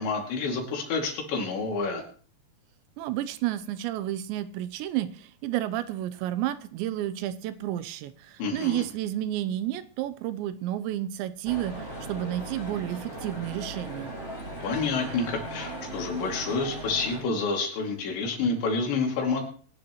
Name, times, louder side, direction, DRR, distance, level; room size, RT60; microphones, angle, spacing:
voice 1, 0.0-2.0 8.4-8.8 14.6-19.4, left 4 dB, 80° left, 1 dB, 4.9 m, -28 dB
voice 2, 3.0-14.1, right 13 dB, 85° right, 13 dB, 3.1 m, -31 dB
sound 1, 11.4-17.2, right 1 dB, 25° left, 7.7 m, -38 dB
22.0 x 11.5 x 3.1 m, 0.42 s
omnidirectional pair, 5.1 m